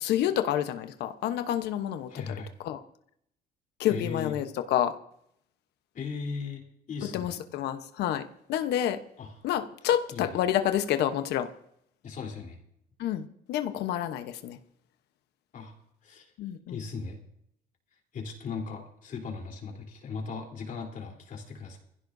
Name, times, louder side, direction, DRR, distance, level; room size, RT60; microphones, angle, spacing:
voice 1, 0.0-2.1 2.6-2.8 3.8-4.9 7.1-8.2 8.5-9.0 9.4-11.5 13.0-14.6 16.4-16.8, left 11 dB, 80° left, 9 dB, 1.0 m, -28 dB
voice 2, 2.1-2.5 3.9-4.4 5.9-7.4 9.2-9.4 10.1-10.4 12.0-12.6 15.5-15.7 16.0-16.3 16.7-17.2 18.1-21.8, left 5 dB, 50° left, 1 dB, 3.6 m, -38 dB
22.5 x 15.5 x 2.7 m, 0.72 s
cardioid pair, 110°, 17 cm